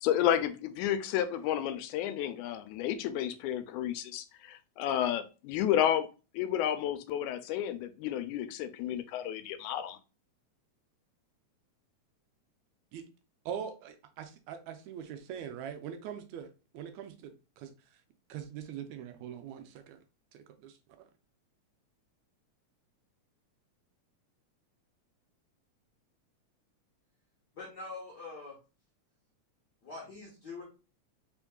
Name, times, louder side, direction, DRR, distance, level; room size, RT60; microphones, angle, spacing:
voice 1, 0.0-6.1 6.3-10.0, left 10 dB, 90° left, 10 dB, 2.0 m, -31 dB
voice 2, 13.5-17.7 18.3-20.0 20.3-21.0, right 8 dB, 80° right, 7 dB, 1.8 m, -42 dB
voice 3, 27.5-28.5 29.8-30.6, left 3 dB, 60° left, -4 dB, 1.1 m, -44 dB
4.4 x 3.5 x 2.2 m, 0.31 s
omnidirectional pair, 3.4 m